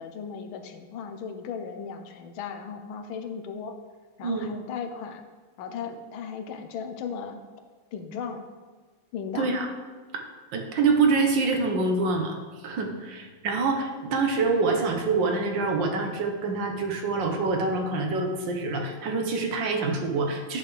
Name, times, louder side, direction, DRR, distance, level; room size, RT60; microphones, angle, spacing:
voice 1, 0.0-3.8 4.2-5.2 5.6-7.4 7.9-8.5 9.1-9.6, left 6 dB, 80° left, 6 dB, 1.6 m, -36 dB
voice 2, 9.3-9.7 10.5-12.4 12.6-20.6, right 3 dB, 65° right, 3 dB, 1.7 m, -26 dB
10.0 x 8.1 x 3.3 m, 1.4 s
omnidirectional pair, 2.2 m